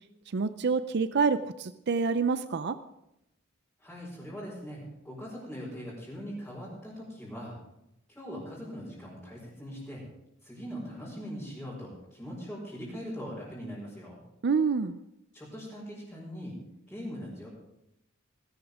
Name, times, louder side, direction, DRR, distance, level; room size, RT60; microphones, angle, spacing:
voice 1, 0.3-2.8 14.4-15.0, right 5 dB, 55° right, 12 dB, 0.5 m, -27 dB
voice 2, 3.8-4.8 5.0-7.5 8.1-10.0 10.4-14.2 15.3-16.6 16.9-17.5, equal, 5° left, -8 dB, 4.7 m, -41 dB
18.0 x 13.5 x 3.6 m, 0.86 s
head